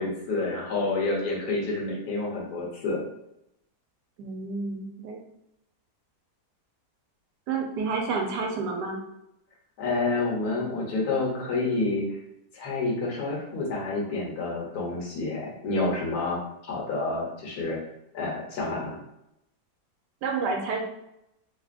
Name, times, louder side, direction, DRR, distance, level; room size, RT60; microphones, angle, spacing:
voice 1, 0.0-3.0 9.8-12.2 12.5-16.4 16.7-17.8 18.1-18.9, left 3 dB, 70° left, -2 dB, 1.5 m, -28 dB
voice 2, 4.2-5.2 7.5-9.0 20.2-20.8, right 4 dB, 85° right, 1 dB, 1.3 m, -29 dB
3.5 x 3.4 x 2.5 m, 0.84 s
omnidirectional pair, 1.8 m